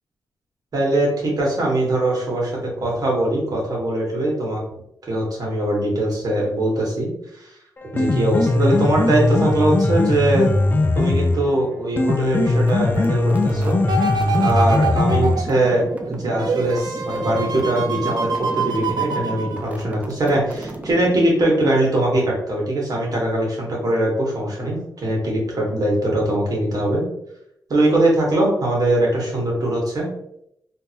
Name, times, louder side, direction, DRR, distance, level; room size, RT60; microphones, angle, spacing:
voice 1, 0.7-4.6 5.1-7.5 7.9-10.5 10.9-13.8 14.4-27.1 27.7-30.1, right 1 dB, 60° right, -3 dB, 1.5 m, -21 dB
Piano, 7.8-15.8, left 2 dB, 30° left, 0.4 m, -20 dB
sound 1, 12.5-21.5, right 2 dB, 20° right, 0.5 m, -35 dB
sound 2, 13.9-20.1 20.6-20.7, right 4 dB, 75° right, 0.5 m, -26 dB
3.6 x 2.7 x 2.8 m, 0.76 s
wide cardioid pair, 100°, 7 cm